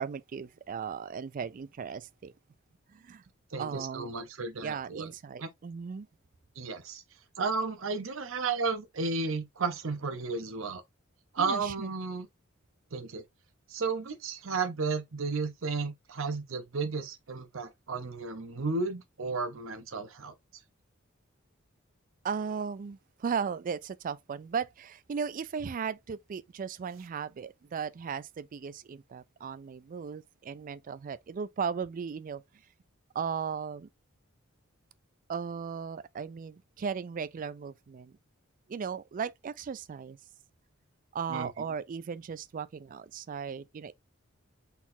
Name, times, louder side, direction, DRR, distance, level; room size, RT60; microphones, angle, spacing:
voice 1, 0.0-2.3 2.9-3.2 3.6-4.1 4.6-6.1 11.4-11.9 22.2-32.4 33.1-33.9 35.3-38.2 38.7-40.2 41.1-43.9, right 6 dB, 40° right, 0.3 m, -36 dB
voice 2, 3.5-5.1 5.4-5.5 6.6-7.0 7.4-10.8 11.3-12.3 12.9-13.2 13.7-20.3 41.3-41.5, right 4 dB, 70° right, 0.8 m, -33 dB
4.1 x 4.0 x 2.7 m
head